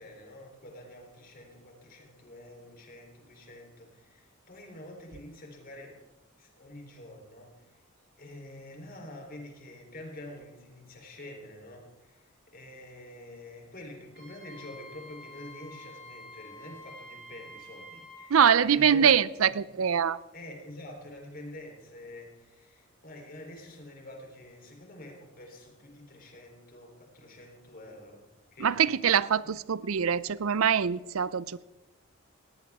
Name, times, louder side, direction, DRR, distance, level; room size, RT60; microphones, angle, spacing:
voice 1, 0.0-6.0 6.4-7.8 8.2-19.1 19.4-19.6 20.3-28.9 29.4-29.5, left 1 dB, 45° left, 3.7 m, -47 dB
Wind instrument woodwind instrument, 14.1-18.3, left 1 dB, 55° right, 7.1 m, -48 dB
voice 2, 18.3-20.2 28.6-31.6, right 8 dB, 90° right, 0.5 m, -24 dB
19.0 x 18.0 x 3.6 m
head